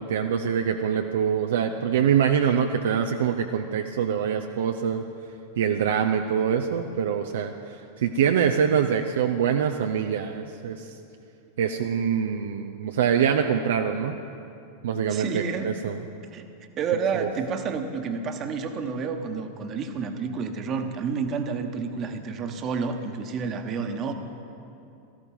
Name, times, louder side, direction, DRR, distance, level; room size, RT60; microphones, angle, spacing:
voice 1, 0.0-5.0 5.6-10.9 11.6-14.2 14.8-16.0, right 7 dB, 60° right, 5 dB, 0.6 m, -24 dB
voice 2, 15.1-15.7 16.3-16.5 16.8-24.1, right 5 dB, 30° right, 6 dB, 1.3 m, -29 dB
18.0 x 14.0 x 5.4 m, 2.7 s
figure-of-eight pair, 90°, 0 cm